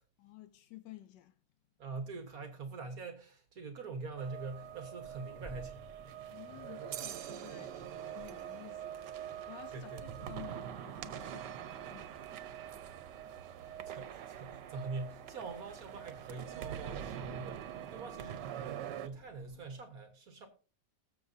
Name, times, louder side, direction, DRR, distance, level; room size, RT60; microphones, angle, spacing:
voice 1, 0.2-1.4 6.3-12.3 13.6-13.7, left 15 dB, 90° left, 1.4 m, -53 dB
voice 2, 1.8-6.2 9.7-10.2 13.9-18.4 19.0-20.5, right 3 dB, 60° right, 1.8 m, -44 dB
Accelerating revving vroom, 4.0-19.7, equal, 5° left, 0.4 m, -60 dB
sound 1, 4.2-19.1, right 10 dB, 90° right, 1.4 m, -44 dB
19.5 x 7.4 x 2.7 m
omnidirectional pair, 1.8 m